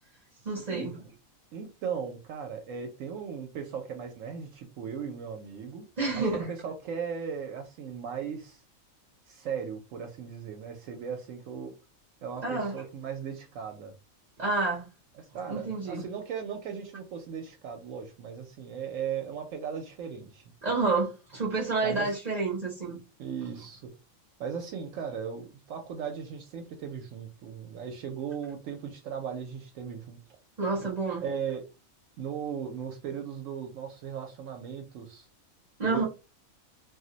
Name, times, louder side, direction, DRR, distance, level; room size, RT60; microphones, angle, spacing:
voice 1, 0.4-1.0 6.0-6.5 12.4-12.7 14.4-14.9 15.5-16.1 20.6-23.0 30.6-31.2 35.8-36.0, right 3 dB, 40° right, 0.6 m, -29 dB
voice 2, 1.5-5.9 6.1-8.6 9.3-11.7 12.2-13.9 15.2-20.4 21.8-22.1 23.2-23.9 24.4-30.2 31.2-31.6 32.2-35.3 35.8-36.0, right 7 dB, 70° right, 0.9 m, -37 dB
2.5 x 2.1 x 3.8 m
omnidirectional pair, 1.5 m